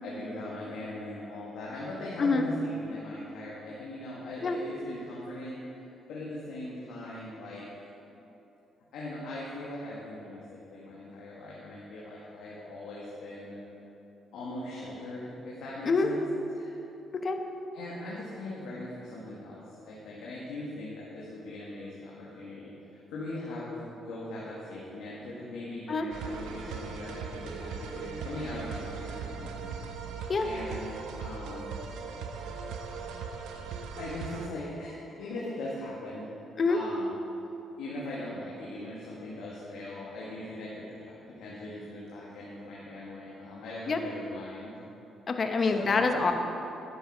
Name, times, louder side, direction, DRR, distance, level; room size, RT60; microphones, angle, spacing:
voice 1, 0.0-5.6 6.1-7.6 8.9-13.6 14.3-16.2 16.5-16.7 17.7-29.8 30.4-31.8 34.0-34.9 35.2-36.3 36.7-37.2 37.8-44.7 45.6-46.3, left 1 dB, 85° left, -6 dB, 2.0 m, -40 dB
sound 1, 26.1-34.5, right 5 dB, 85° right, 0.9 m, -39 dB
voice 2, 45.3-46.3, left 4 dB, 45° left, 5 dB, 0.9 m, -26 dB
12.0 x 8.4 x 5.0 m, 3.0 s
cardioid pair, 90°, 0 cm